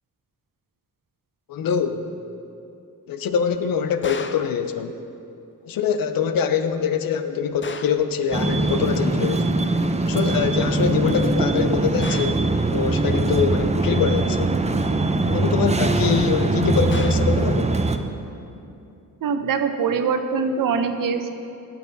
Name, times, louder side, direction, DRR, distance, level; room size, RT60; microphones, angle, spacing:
voice 1, 1.5-2.1 3.1-4.9 5.7-9.5 10.0-14.5 15.3-17.8, left 7 dB, 85° left, 9 dB, 0.7 m, -24 dB
sound 1, 4.0-4.6 7.6-8.1 12.0-12.5 16.9-17.4, left 5 dB, 35° left, 0.6 m, -35 dB
sound 2, 8.3-18.0, right 2 dB, 20° right, 0.6 m, -22 dB
voice 2, 19.2-21.3, right 5 dB, 75° right, 8 dB, 0.8 m, -23 dB
17.5 x 6.7 x 4.0 m, 2.7 s
cardioid pair, 80°, 34 cm